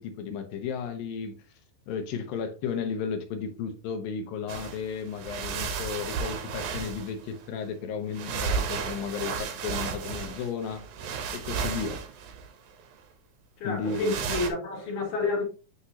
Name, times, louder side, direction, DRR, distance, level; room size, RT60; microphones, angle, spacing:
voice 1, 0.0-1.3 1.9-10.8 11.3-12.0 13.6-14.2, left 6 dB, 75° left, 2.3 m, -34 dB
sound 1, 4.5-4.8 5.1-7.4 8.1-12.7 13.9-14.5, right 5 dB, 70° right, 1.9 m, -33 dB
voice 2, 13.6-15.4, left 3 dB, 55° left, 3.0 m, -29 dB
9.6 x 3.6 x 2.8 m
omnidirectional pair, 4.5 m